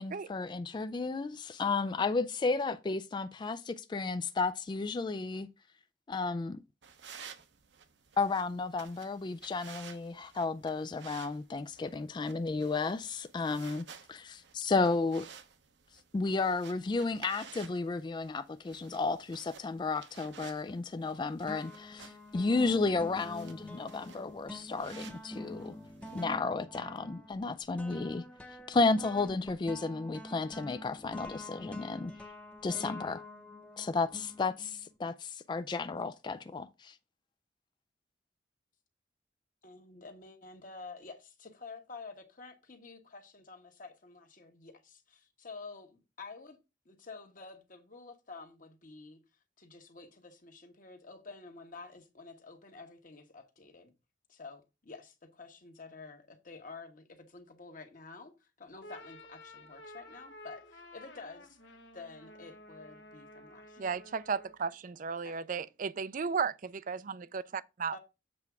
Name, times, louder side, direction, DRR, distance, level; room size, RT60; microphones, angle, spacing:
voice 1, 0.0-5.5 6.1-6.6 8.2-15.3 16.1-25.7 26.1-32.1 32.6-33.2 33.8-37.0, left 3 dB, 25° left, 0.3 m, -33 dB
sound 1, 6.8-26.3, right 6 dB, 80° right, 1.0 m, -54 dB
sound 2, 20.7-21.1 21.5-34.9, left 1 dB, 5° left, 0.8 m, -46 dB
voice 2, 39.6-46.6 46.8-49.2 49.6-53.9 54.3-64.0 65.2-65.4 67.9-68.0, left 4 dB, 50° left, 1.3 m, -50 dB
sound 3, 58.7-64.7, left 1 dB, 75° left, 1.2 m, -52 dB
voice 3, 63.8-68.0, right 5 dB, 45° right, 0.4 m, -35 dB
7.7 x 3.5 x 6.0 m
head